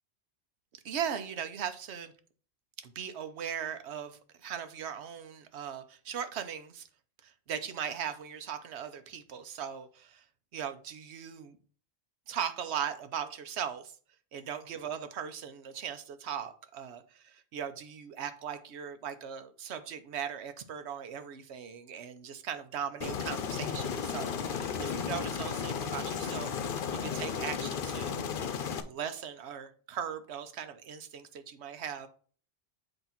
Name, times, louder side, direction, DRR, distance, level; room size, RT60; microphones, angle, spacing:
voice 1, 0.8-2.1 2.8-6.9 7.2-10.2 10.5-11.6 12.3-14.0 14.3-26.5 27.0-28.2 28.8-32.1, right 8 dB, 85° right, 1.0 m, -39 dB
Aircraft, 23.0-28.8, left 6 dB, 60° left, 0.8 m, -34 dB
8.0 x 2.9 x 5.7 m
omnidirectional pair, 1.1 m